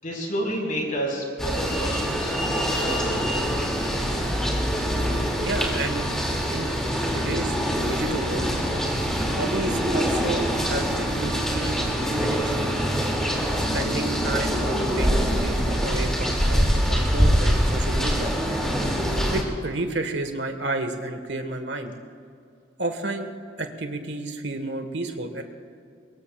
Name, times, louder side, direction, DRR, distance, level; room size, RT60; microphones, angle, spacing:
voice 1, 0.0-3.5, equal, 45° left, -1 dB, 5.0 m, -30 dB
sound 1, 1.4-19.4, equal, 5° left, 2.6 m, -24 dB
voice 2, 5.4-6.1 6.5-6.7 7.1-8.5 9.4-11.8 12.2-12.7 13.7-18.3 19.3-21.9 22.8-23.3 23.6-25.4, right 2 dB, 70° right, 6 dB, 1.6 m, -31 dB
23.0 x 22.5 x 2.4 m, 2.4 s
head